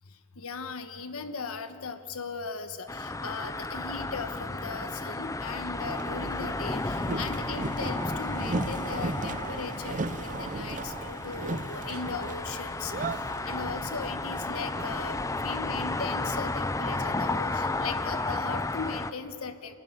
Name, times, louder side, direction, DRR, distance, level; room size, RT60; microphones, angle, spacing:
voice 1, 0.4-12.9 13.4-19.7, left 4 dB, 70° left, 8 dB, 1.3 m, -38 dB
sound 1, 2.9-19.1, left 2 dB, 15° left, 0.6 m, -33 dB
Boat Water vehicle, 5.8-17.2, right 3 dB, 35° right, 0.7 m, -37 dB
sound 2, 9.8-10.1 11.4-11.5 11.9-12.1 13.5-14.1, right 4 dB, 65° right, 1.4 m, -48 dB
28.5 x 13.0 x 9.5 m, 2.5 s
head